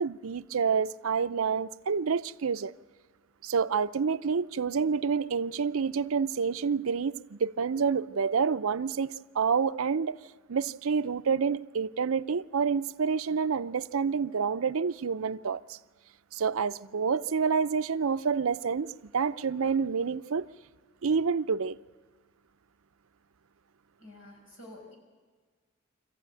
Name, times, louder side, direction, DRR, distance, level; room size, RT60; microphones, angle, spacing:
voice 1, 0.0-2.7 3.4-10.2 10.5-15.8 16.3-20.5 21.0-21.8, right 6 dB, 75° right, 0.6 m, -28 dB
voice 2, 24.0-24.9, left 1 dB, 65° left, 6.2 m, -49 dB
25.5 x 15.0 x 9.0 m
head